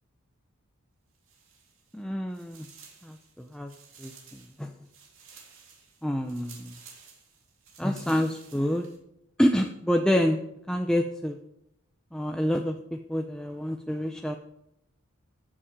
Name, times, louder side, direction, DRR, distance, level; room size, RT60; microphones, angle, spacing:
sound 1, 1.1-2.0 2.3-9.0, right 6 dB, 60° right, 3.4 m, -53 dB
voice 1, 1.9-2.7 3.0-3.7 4.0-4.7 6.0-6.7 7.8-8.9 9.4-11.4 12.1-14.4, equal, 5° left, 4 dB, 0.5 m, -28 dB
14.5 x 7.4 x 5.1 m, 0.81 s
head